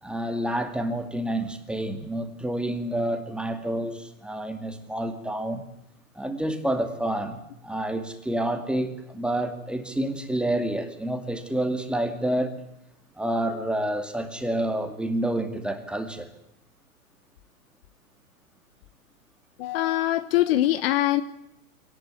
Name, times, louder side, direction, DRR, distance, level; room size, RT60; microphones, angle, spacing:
voice 1, 0.0-5.6 6.2-12.5 13.2-16.3, right 1 dB, ahead, 2.3 m, -28 dB
voice 2, 19.6-21.2, left 14 dB, 45° left, 1.1 m, -23 dB
24.0 x 19.0 x 9.7 m
hypercardioid pair, 140°, 42 cm